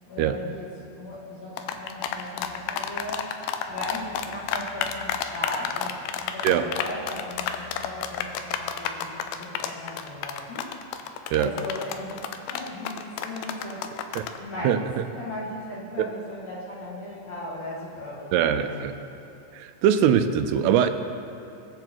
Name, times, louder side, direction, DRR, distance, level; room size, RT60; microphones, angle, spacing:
voice 1, 0.1-10.8 11.3-14.0 14.4-18.9, left 1 dB, 50° left, -6 dB, 2.6 m, -37 dB
sound 1, 1.6-14.4, left 9 dB, 80° left, 2.4 m, -30 dB
voice 2, 14.6-15.0 16.0-16.1 18.3-18.9 19.5-20.9, right 9 dB, 85° right, 8 dB, 2.7 m, -22 dB
22.0 x 7.8 x 4.5 m, 2.7 s
omnidirectional pair, 4.7 m